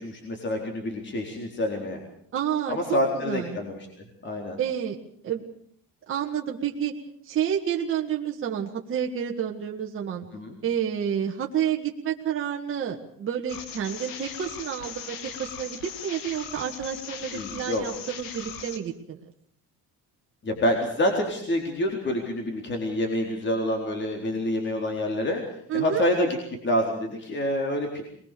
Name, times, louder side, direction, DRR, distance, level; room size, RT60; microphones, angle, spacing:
voice 1, 0.0-2.0 2.7-3.8 4.2-4.6 10.3-10.6 17.3-17.8 20.4-25.4 25.7-26.4 26.6-28.0, left 1 dB, 35° left, 2 dB, 4.1 m, -27 dB
voice 2, 2.3-3.6 4.6-5.0 5.2-5.4 6.1-6.9 7.2-10.3 10.6-19.2 25.7-26.1, right 9 dB, 35° right, 0 dB, 1.9 m, -29 dB
sound 1, 13.5-18.8, left 7 dB, 75° left, 2.4 m, -39 dB
22.5 x 20.5 x 6.9 m, 0.66 s
cardioid pair, 130°, 34 cm